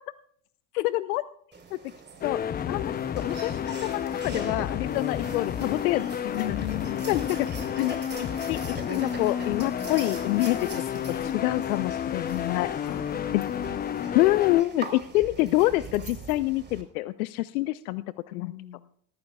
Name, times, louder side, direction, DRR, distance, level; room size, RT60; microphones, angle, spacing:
voice 1, 0.8-1.3 2.2-2.4 2.7-3.5 3.8-6.3 7.1-7.3 7.8-10.6 11.3-12.7 13.3-13.4 14.1-18.5, left 17 dB, 65° left, 16 dB, 0.7 m, -26 dB
sound 1, 1.5-16.8, right 4 dB, 25° right, 3.7 m, -43 dB
sound 2, 2.2-14.6, left 8 dB, 20° left, 0.6 m, -31 dB
voice 2, 6.3-7.1 10.5-11.4 12.8-13.8 18.3-18.9, left 13 dB, 85° left, 15 dB, 1.1 m, -38 dB
20.0 x 14.0 x 2.3 m, 0.63 s
hypercardioid pair, 80°, 46 cm